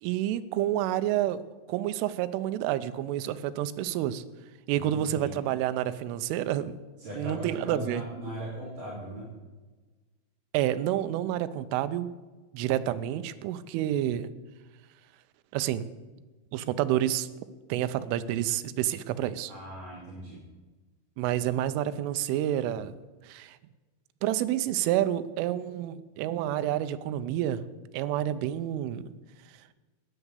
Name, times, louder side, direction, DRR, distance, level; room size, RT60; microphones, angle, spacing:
voice 1, 0.0-1.4 1.7-4.2 4.7-6.8 7.2-8.0 10.5-12.1 12.5-14.3 15.5-15.9 16.5-17.3 17.7-19.5 21.2-22.9 23.2-23.6 24.2-27.6 27.9-29.2, right 12 dB, 80° right, 12 dB, 3.2 m, -29 dB
voice 2, 4.7-5.3 7.0-9.3 19.5-20.4, right 1 dB, 50° right, -9 dB, 5.8 m, -39 dB
13.0 x 9.9 x 8.3 m, 1.3 s
omnidirectional pair, 5.8 m